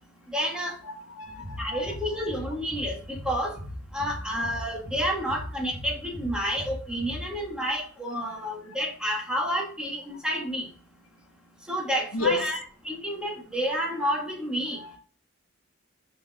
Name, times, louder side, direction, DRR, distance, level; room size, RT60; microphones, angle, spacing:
voice 1, 0.3-0.8 1.6-3.6 3.9-10.7 11.7-12.6 12.8-14.8, equal, 5° right, 1.9 m, -30 dB
voice 2, 0.8-2.3 8.2-8.5 12.1-12.5 14.7-15.0, left 3 dB, 85° left, 1.0 m, -32 dB
sound 1, 1.2-7.7, left 1 dB, 45° right, 1.8 m, -40 dB
6.5 x 4.8 x 3.5 m
head